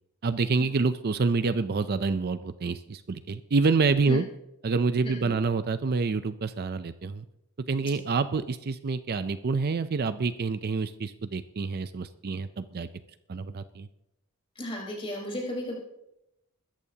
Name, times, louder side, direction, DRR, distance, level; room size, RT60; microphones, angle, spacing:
voice 1, 0.2-4.3 4.6-7.2 7.7-12.9 13.3-13.9, right 4 dB, 45° right, 12 dB, 0.5 m, -27 dB
voice 2, 5.0-5.3 14.6-15.7, left 1 dB, 25° left, -2 dB, 4.3 m, -34 dB
21.0 x 13.5 x 2.8 m, 0.85 s
head